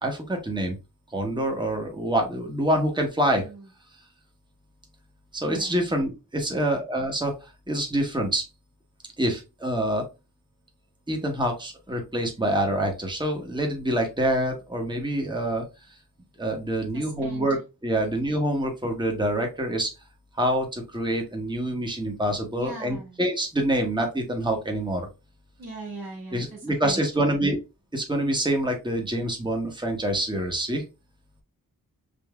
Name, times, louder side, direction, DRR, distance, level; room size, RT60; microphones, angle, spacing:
voice 1, 0.0-0.8 1.1-3.5 5.3-8.4 9.2-10.0 11.1-15.6 16.4-17.6 17.8-19.9 20.4-25.1 26.3-27.6 27.9-30.8, right 1 dB, 15° right, 2 dB, 1.2 m, -26 dB
voice 2, 3.2-3.7 5.4-5.8 16.9-17.6 22.6-23.2 25.6-27.4, right 3 dB, 90° right, -2 dB, 2.0 m, -40 dB
5.3 x 2.7 x 2.4 m, 0.27 s
cardioid pair, 45°, 35 cm